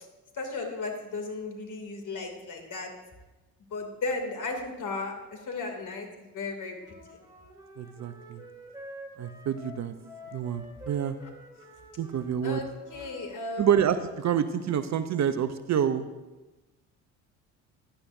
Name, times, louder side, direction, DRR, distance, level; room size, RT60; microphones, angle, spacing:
voice 1, 0.4-2.9 3.7-5.1 5.5-6.8 12.4-12.7 12.9-13.7, left 3 dB, 45° left, 3 dB, 2.9 m, -35 dB
Wind instrument woodwind instrument, 6.8-13.4, equal, 10° right, 3.2 m, -48 dB
voice 2, 7.8-8.4 9.2-9.9 10.3-11.2 12.0-12.6 13.6-16.0, right 8 dB, 40° right, 11 dB, 0.8 m, -27 dB
16.0 x 11.5 x 2.7 m, 1.1 s
hypercardioid pair, 60°, 42 cm